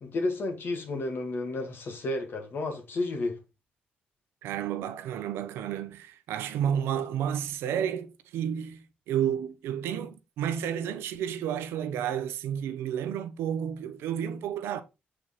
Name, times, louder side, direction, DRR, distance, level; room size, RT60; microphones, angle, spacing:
voice 1, 0.0-3.4, left 2 dB, 65° left, 2.1 m, -31 dB
voice 2, 4.4-14.8, right 9 dB, 90° right, 0.7 m, -31 dB
6.5 x 4.5 x 4.0 m
cardioid pair, 65°, 4 cm